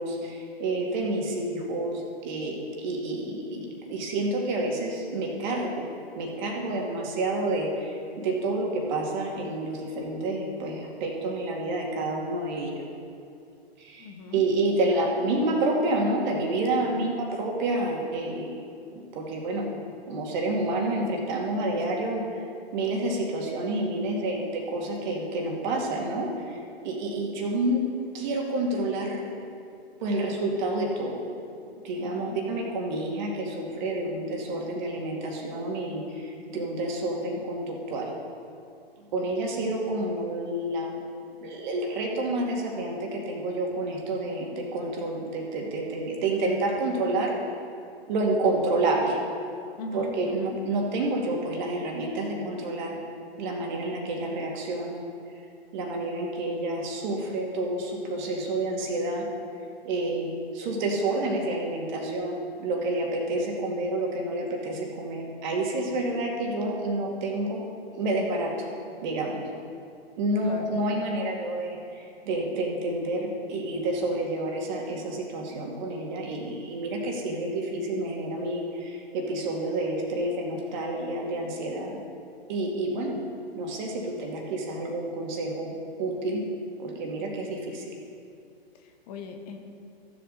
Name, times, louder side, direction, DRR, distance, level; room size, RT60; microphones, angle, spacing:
voice 1, 0.0-5.9 6.2-12.8 13.8-18.5 18.9-19.7 20.1-22.4 22.7-27.8 28.1-29.2 30.0-31.2 31.8-38.1 39.1-47.3 48.1-49.2 49.9-53.0 53.4-55.0 55.7-59.2 59.8-67.6 67.9-68.7 69.0-69.4 70.2-82.0 82.5-83.2 83.5-86.4 86.8-87.9, right 2 dB, 45° right, 0 dB, 2.3 m, -29 dB
voice 2, 14.0-14.4 32.0-32.4 49.8-50.6 70.4-70.8 88.7-89.6, left 4 dB, 40° left, 5 dB, 1.1 m, -39 dB
15.0 x 7.5 x 4.1 m, 2.4 s
hypercardioid pair, 120°, 31 cm